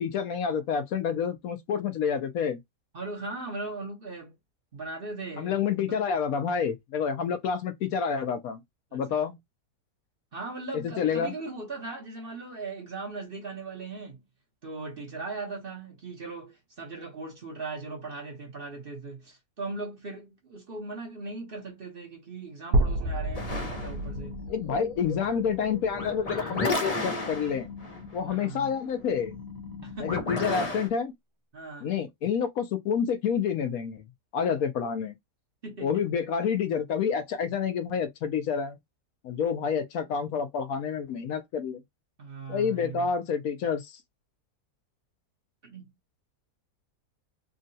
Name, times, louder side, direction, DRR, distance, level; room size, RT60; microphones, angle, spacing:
voice 1, 0.0-2.6 5.4-8.6 8.9-9.4 10.7-11.3 23.6-23.7 24.5-27.7 28.1-29.3 30.0-31.1 31.8-34.0 34.3-35.1 35.8-38.8 39.2-41.8 42.5-44.0, left 7 dB, 70° left, 0.9 m, -28 dB
voice 2, 2.9-4.3 4.7-5.6 5.9-6.0 8.9-9.2 10.3-14.2 14.6-24.4 28.3-28.7 29.8-30.2 31.5-31.9 35.6-36.0 42.2-43.1 45.6-45.9, right 3 dB, 45° right, 0.8 m, -39 dB
sound 1, 22.7-26.7, right 1 dB, 75° right, 1.1 m, -30 dB
sound 2, 23.3-30.9, left 2 dB, 50° left, 0.4 m, -35 dB
3.7 x 2.1 x 2.6 m
omnidirectional pair, 1.8 m